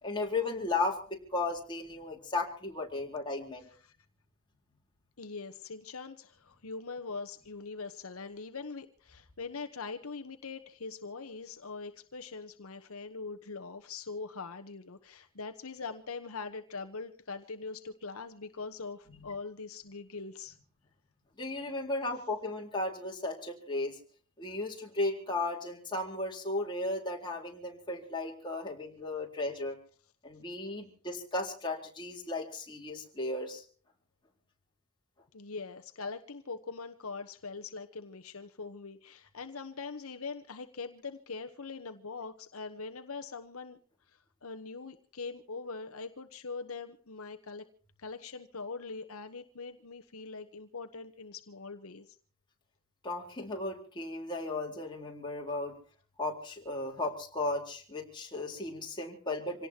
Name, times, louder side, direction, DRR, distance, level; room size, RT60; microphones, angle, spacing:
voice 1, 0.0-3.6 19.2-19.3 21.4-24.0 24.4-29.8 30.2-33.6 53.0-55.7 56.2-59.7, left 2 dB, 20° left, -1 dB, 3.9 m, -35 dB
voice 2, 5.2-20.6 35.3-43.8 44.1-47.6 48.0-52.2, left 4 dB, 70° left, 6 dB, 1.1 m, -42 dB
26.5 x 18.0 x 2.9 m, 0.42 s
head